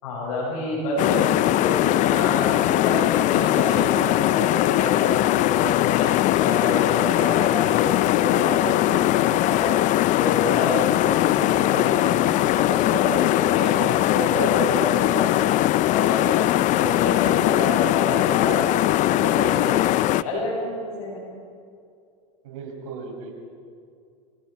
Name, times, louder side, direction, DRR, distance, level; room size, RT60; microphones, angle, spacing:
voice 1, 0.0-6.1 6.3-9.7 10.1-15.6 15.9-16.4 16.7-19.7 20.2-21.2, left 2 dB, 75° left, -7 dB, 7.5 m, -28 dB
sound 1, 1.0-20.2, left 15 dB, 45° left, 0.5 m, -20 dB
voice 2, 22.4-23.3, right 4 dB, 80° right, 2 dB, 5.4 m, -37 dB
26.0 x 17.5 x 5.8 m, 2.3 s
supercardioid pair, 105°, 18 cm